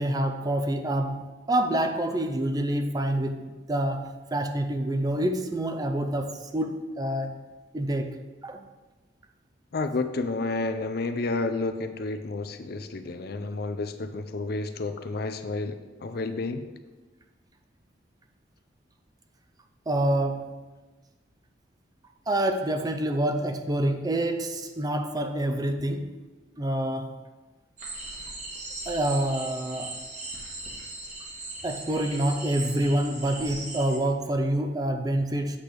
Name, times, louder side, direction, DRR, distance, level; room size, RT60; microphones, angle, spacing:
voice 1, 0.0-7.4 7.7-8.6 19.9-20.5 22.3-26.2 26.6-27.2 28.9-30.0 31.6-35.6, right 1 dB, 20° right, 0.4 m, -27 dB
voice 2, 9.7-16.7, left 3 dB, 55° left, 0.5 m, -30 dB
sound 1, 27.8-34.0, right 2 dB, 40° right, 1.5 m, -38 dB
8.4 x 3.4 x 6.1 m
head